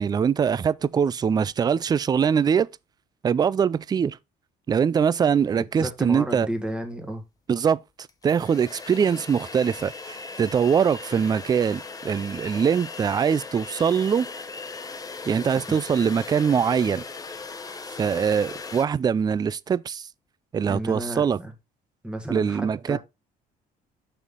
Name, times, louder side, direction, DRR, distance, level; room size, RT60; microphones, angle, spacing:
voice 1, 0.0-2.7 3.2-4.2 4.7-6.5 7.5-7.8 8.2-14.3 15.3-17.0 18.0-20.1 20.5-21.4 22.3-23.0, right 7 dB, 25° right, 0.3 m, -23 dB
voice 2, 5.6-7.2 15.7-15.8 20.7-21.5 22.0-23.0, right 1 dB, 5° right, 1.8 m, -32 dB
sound 1, 7.6-7.7 8.1-18.8, left 4 dB, 20° left, 0.9 m, -38 dB
6.2 x 5.6 x 3.7 m
cardioid pair, 110°, 17 cm